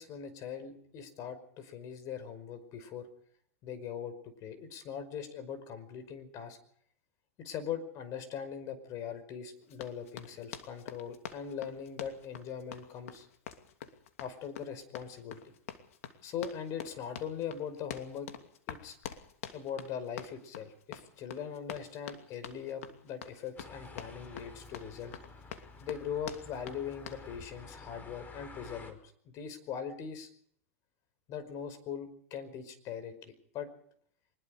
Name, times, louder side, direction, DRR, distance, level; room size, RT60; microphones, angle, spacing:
voice 1, 0.0-3.1 3.6-6.6 7.4-13.3 14.2-15.5 16.2-18.3 18.7-19.0 19.5-25.2 25.8-30.3 31.3-33.7, left 8 dB, 45° left, 11 dB, 5.3 m, -41 dB
Run, 9.7-27.3, left 9 dB, 75° left, 2.7 m, -46 dB
sound 1, 23.6-28.9, left 3 dB, 20° left, 4.8 m, -50 dB
24.0 x 21.0 x 5.2 m, 0.64 s
hypercardioid pair, 110°, 8 cm